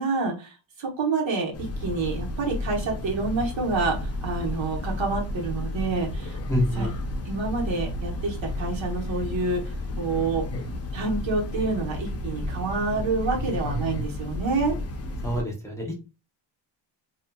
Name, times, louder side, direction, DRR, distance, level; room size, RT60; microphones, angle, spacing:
voice 1, 0.0-1.5 1.8-6.4 6.7-6.9 7.3-9.6 10.0-10.4 10.9-14.8, right 3 dB, 70° right, -1 dB, 1.2 m, -28 dB
Train, 1.5-15.4, left 1 dB, 35° left, 0.5 m, -32 dB
voice 2, 6.5-6.9 15.2-16.0, equal, 5° left, -1 dB, 0.8 m, -27 dB
2.7 x 2.4 x 2.2 m, 0.30 s
cardioid pair, 105°, 47 cm